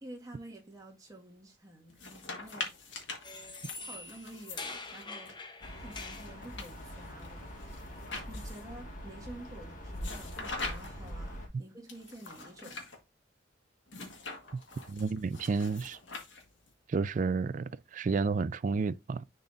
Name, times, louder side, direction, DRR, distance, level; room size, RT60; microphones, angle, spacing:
voice 1, 0.0-2.7 3.8-5.4 5.7-7.5 7.8-8.0 8.3-12.8, right 1 dB, 20° right, 1.6 m, -49 dB
sound 1, 1.9-5.3 5.9-8.8 10.0-11.1 11.9-13.0 13.9-16.7, left 3 dB, 70° left, 1.6 m, -44 dB
sound 2, 3.2-6.3, left 3 dB, 25° left, 0.8 m, -44 dB
sound 3, 5.6-11.5, equal, 45° left, 1.7 m, -43 dB
voice 2, 14.9-16.0 16.9-19.2, right 4 dB, 40° right, 0.3 m, -31 dB
10.5 x 4.0 x 2.5 m
head